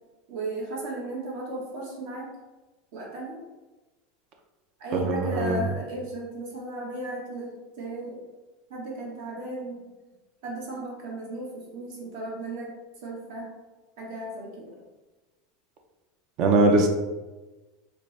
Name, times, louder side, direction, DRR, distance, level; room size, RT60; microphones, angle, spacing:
voice 1, 0.3-2.3 2.9-3.4 4.8-8.2 8.7-9.8 10.4-12.7 13.0-13.5 14.0-14.7, right 2 dB, 65° right, -3 dB, 1.1 m, -35 dB
voice 2, 4.9-5.6 16.4-16.9, right 2 dB, 45° right, 4 dB, 0.5 m, -21 dB
4.2 x 2.0 x 3.1 m, 1.2 s
supercardioid pair, 155°, 0 cm